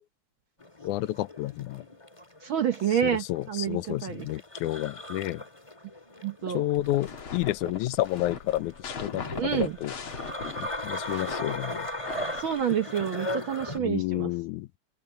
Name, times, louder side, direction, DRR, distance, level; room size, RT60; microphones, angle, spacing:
sound 1, 0.6-13.8, left 1 dB, 10° left, 1.9 m, -38 dB
voice 1, 0.8-1.8 2.9-5.4 6.5-9.9 10.6-11.9 13.8-14.7, left 15 dB, 85° left, 2.1 m, -30 dB
voice 2, 2.4-4.2 6.2-6.6 9.4-9.7 12.4-14.3, right 9 dB, 65° right, 1.3 m, -28 dB
sound 2, 6.8-12.6, left 5 dB, 45° left, 2.7 m, -39 dB
open air
omnidirectional pair, 3.4 m